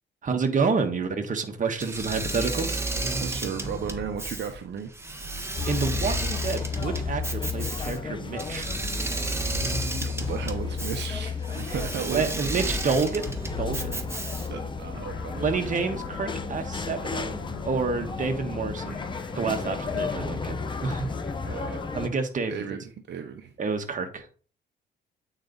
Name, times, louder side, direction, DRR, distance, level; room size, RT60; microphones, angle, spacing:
voice 1, 0.2-2.8 5.7-8.7 11.7-11.8 12.0-13.3 13.6-14.0 15.4-17.4 17.6-19.0 19.3-21.1 21.9-22.5 23.6-24.3, right 4 dB, 40° right, 5 dB, 1.3 m, -28 dB
Engine / Mechanisms, 1.8-14.7, right 2 dB, 15° right, 1.3 m, -32 dB
voice 2, 3.2-4.9 10.0-12.7 14.5-15.5 21.4-21.8 22.5-23.5, right 7 dB, 60° right, 4 dB, 0.9 m, -35 dB
sound 1, 5.6-22.1, left 5 dB, 25° left, 0.7 m, -33 dB
sound 2, 14.9-22.3, left 5 dB, 85° left, 2.1 m, -45 dB
8.7 x 4.1 x 4.0 m, 0.39 s
cardioid pair, 90°, 20 cm